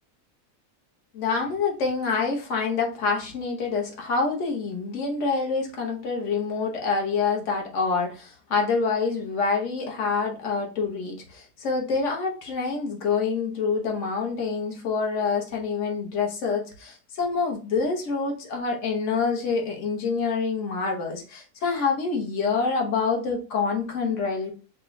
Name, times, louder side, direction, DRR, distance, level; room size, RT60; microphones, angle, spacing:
voice 1, 1.1-24.5, left 4 dB, 55° left, 1 dB, 1.2 m, -26 dB
5.0 x 2.3 x 3.0 m, 0.36 s
omnidirectional pair, 1.7 m